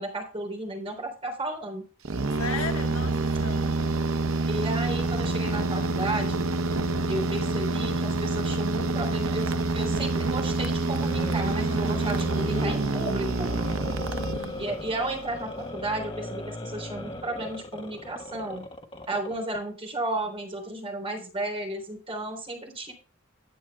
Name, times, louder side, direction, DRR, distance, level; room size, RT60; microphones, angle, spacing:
voice 1, 0.0-1.8 4.5-6.5 7.1-13.5 14.6-18.7 19.1-22.9, right 2 dB, 25° right, 3.6 m, -33 dB
sound 1, 2.0-14.9, right 3 dB, 80° right, 0.8 m, -27 dB
voice 2, 2.3-3.8 14.1-14.6, left 4 dB, 85° left, 1.4 m, -37 dB
sound 2, 10.8-19.6, left 1 dB, 25° left, 1.3 m, -37 dB
11.0 x 8.5 x 3.5 m
head